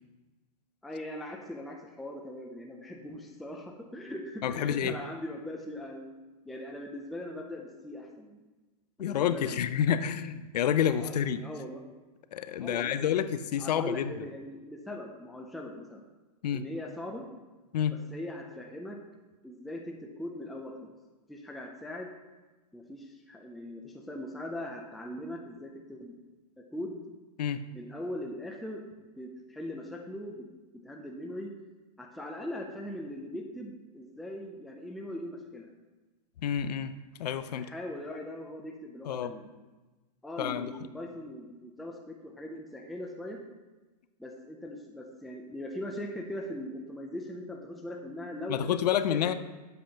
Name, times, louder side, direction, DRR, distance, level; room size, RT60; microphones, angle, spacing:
voice 1, 0.8-6.1 6.5-8.4 9.0-9.6 11.0-11.8 12.6-13.2 13.6-16.0 16.5-17.3 18.1-19.0 19.4-20.9 21.3-22.1 22.7-26.1 26.7-26.9 27.7-30.4 30.8-31.5 32.0-35.7 37.5-39.5 40.2-43.4 44.2-48.6 49.1-49.3, left 1 dB, ahead, 0 dB, 0.3 m, -40 dB
voice 2, 4.4-4.9 9.0-11.4 12.3-14.3 16.4-16.6 17.7-17.9 27.4-27.6 36.4-36.9 37.2-37.7 39.0-39.3 40.4-40.7 48.5-49.3, left 9 dB, 80° left, 12 dB, 0.5 m, -29 dB
7.8 x 5.4 x 2.8 m, 1.2 s
hypercardioid pair, 145°, 20 cm